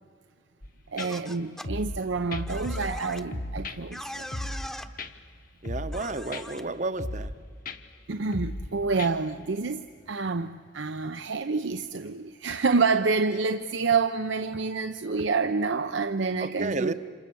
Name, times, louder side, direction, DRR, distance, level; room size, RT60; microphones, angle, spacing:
sound 1, 0.6-0.7 1.0-1.1 1.6-2.0 2.3-3.0 3.3-3.8 4.3-4.7 5.0-5.1 5.6-6.0 6.3-6.4 7.0-7.4 7.7-7.8 8.3-8.7 9.0-9.1, left 1 dB, 50° left, 1.2 m, -34 dB
voice 1, 0.9-4.3 8.1-9.8 10.1-16.9, right 4 dB, 75° right, 8 dB, 0.7 m, -28 dB
sound 2, 1.0-1.7 2.5-3.2 3.9-4.9 5.9-6.6, equal, 5° left, 0.9 m, -40 dB
voice 2, 5.6-7.3 16.4-16.9, right 2 dB, 40° right, 11 dB, 0.9 m, -32 dB
28.5 x 27.0 x 7.0 m, 2.1 s
head